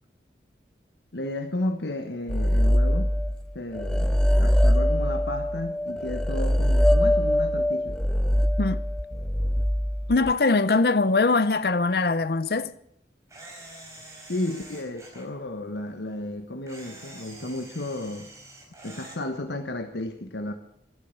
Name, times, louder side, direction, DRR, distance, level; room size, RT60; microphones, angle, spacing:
voice 1, 1.1-3.1 3.5-8.0 14.2-18.3 18.8-20.5, left 1 dB, 85° left, 1.3 m, -33 dB
sound 1, 2.3-3.5 3.7-10.3, equal, 5° left, 0.5 m, -22 dB
voice 2, 10.1-12.7, left 3 dB, 60° left, 0.6 m, -22 dB
Camera, 13.3-15.3 16.7-19.2, right 2 dB, 15° right, 4.3 m, -46 dB
13.0 x 11.0 x 8.3 m
head